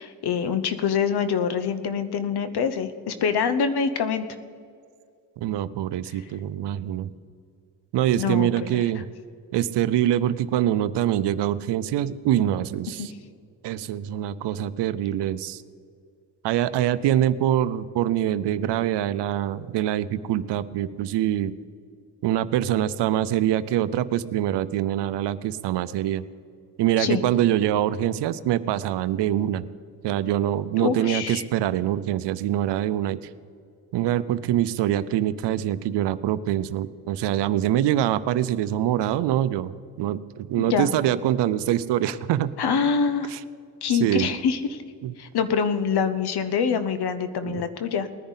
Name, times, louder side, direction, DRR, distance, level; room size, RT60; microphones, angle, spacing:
voice 1, 0.0-4.2 8.2-8.8 13.0-13.1 27.0-27.2 30.8-31.4 40.6-40.9 42.6-43.3 43.8-44.8 45.2-48.1, left 6 dB, 70° left, 11 dB, 1.0 m, -25 dB
voice 2, 5.4-7.1 7.9-9.0 9.5-13.1 13.6-15.6 16.4-21.5 22.2-26.2 26.8-29.7 30.0-33.2 33.9-39.7 40.0-42.6 43.3-43.4 43.9-44.3 45.0-45.1 47.4-47.6, right 12 dB, 80° right, 15 dB, 0.6 m, -24 dB
19.5 x 10.0 x 4.1 m, 2.2 s
cardioid pair, 70°, 41 cm